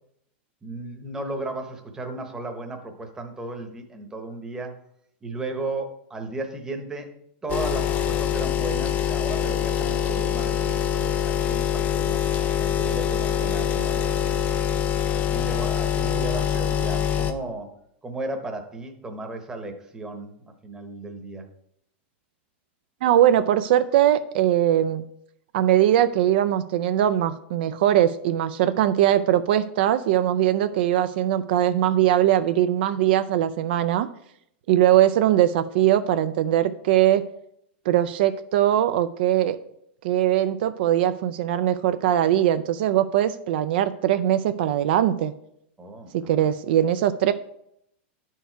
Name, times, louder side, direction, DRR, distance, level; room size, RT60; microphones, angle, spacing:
voice 1, 0.6-4.7 5.2-7.1 7.4-12.2 12.6-14.4 15.1-17.7 18.0-20.3 20.6-21.5 45.8-46.5, right 2 dB, 10° right, 4 dB, 0.9 m, -35 dB
sound 1, 7.5-17.3, left 10 dB, 25° left, 0.5 m, -24 dB
voice 2, 23.0-25.0 25.5-34.1 34.7-37.2 37.9-39.6 40.0-45.3 46.1-47.3, right 12 dB, 60° right, 11 dB, 0.4 m, -21 dB
10.5 x 4.6 x 4.5 m, 0.74 s
supercardioid pair, 160°, 6 cm